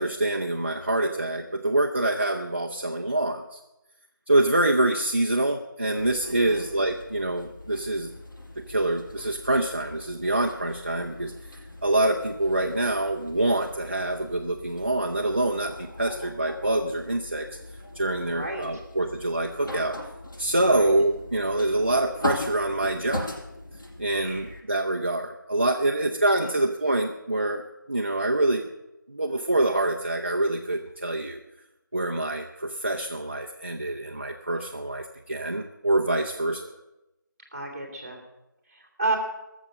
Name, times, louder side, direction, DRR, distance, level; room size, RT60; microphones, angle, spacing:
voice 1, 0.0-3.6 4.3-8.1 8.7-11.3 11.8-17.5 18.0-20.0 20.4-23.3 24.0-27.6 27.9-28.7 29.1-31.4 31.9-36.7, right 1 dB, 35° right, 1 dB, 0.7 m, -25 dB
sound 1, 6.0-24.6, left 1 dB, 70° left, 5.7 m, -40 dB
voice 2, 6.2-6.6 18.3-18.8 20.6-20.9 24.1-24.6 25.9-26.1 26.4-26.6 37.5-38.2 38.7-39.1, right 2 dB, 15° right, -2 dB, 2.2 m, -32 dB
17.5 x 7.3 x 7.5 m, 0.95 s
figure-of-eight pair, 180°, 11 cm